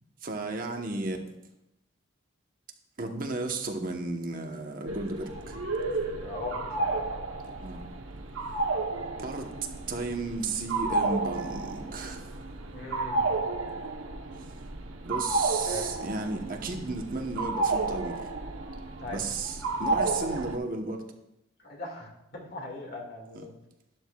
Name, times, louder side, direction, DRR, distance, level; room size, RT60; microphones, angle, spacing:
voice 1, 0.2-1.2 3.0-5.6 7.6-7.9 9.2-12.3 14.4-14.5 15.0-18.3 19.1-21.0 23.3-23.5, right 3 dB, 45° right, 3 dB, 1.0 m, -34 dB
sound 1, 4.9-20.6, right 3 dB, 90° right, 0.9 m, -32 dB
voice 2, 6.1-7.0 12.7-13.4 15.7-16.0 19.0-19.2 21.6-23.5, left 1 dB, 55° left, 0 dB, 1.9 m, -39 dB
12.0 x 11.0 x 2.3 m, 0.88 s
head